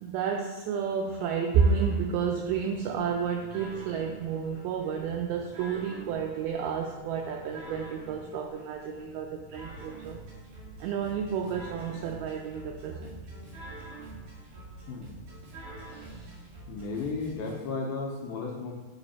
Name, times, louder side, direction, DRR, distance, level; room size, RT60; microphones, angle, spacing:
voice 1, 0.0-10.2 10.8-13.2 15.9-16.3, right 6 dB, 85° right, 2 dB, 2.1 m, -30 dB
sound 1, 1.5-17.5, right 2 dB, 60° right, 3.1 m, -46 dB
voice 2, 16.7-18.7, left 4 dB, 80° left, -1 dB, 2.3 m, -34 dB
8.2 x 3.3 x 4.1 m, 1.4 s
omnidirectional pair, 4.8 m